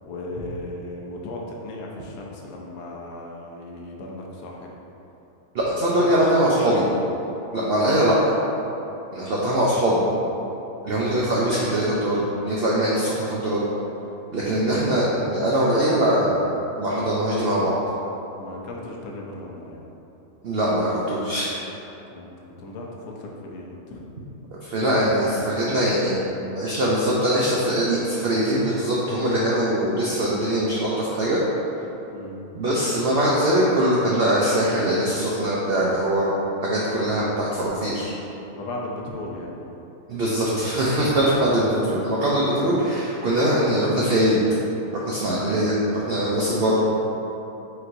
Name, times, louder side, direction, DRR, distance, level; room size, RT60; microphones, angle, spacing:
voice 1, 0.0-4.7 5.7-6.9 7.7-8.0 18.4-19.8 21.9-24.0 32.1-32.4 38.5-39.8 45.4-45.7, left 2 dB, 70° left, -2 dB, 1.0 m, -36 dB
voice 2, 5.5-6.8 7.5-8.3 9.1-10.0 10.8-13.7 14.3-16.4 16.8-17.8 20.4-21.6 24.5-26.2 26.5-31.4 32.5-36.3 36.6-38.1 40.1-44.4 44.9-45.7 46.1-46.8, right 1 dB, 80° right, -5 dB, 0.5 m, -22 dB
4.4 x 3.9 x 2.5 m, 3.0 s
omnidirectional pair, 1.6 m